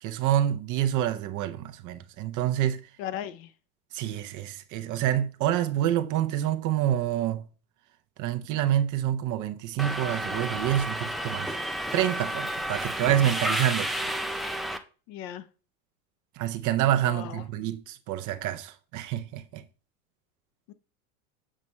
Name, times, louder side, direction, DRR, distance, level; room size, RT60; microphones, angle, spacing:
voice 1, 0.0-2.8 3.9-7.4 8.2-11.5 11.9-13.9 16.4-19.6, right 12 dB, 45° right, 0.8 m, -27 dB
voice 2, 3.0-3.5 15.1-15.4 17.0-17.4 20.7-20.8, left 11 dB, 55° left, 0.9 m, -36 dB
Subway metro underground, 9.8-14.8, right 1 dB, ahead, 0.3 m, -31 dB
7.5 x 5.2 x 3.2 m
hypercardioid pair, 95°, 44 cm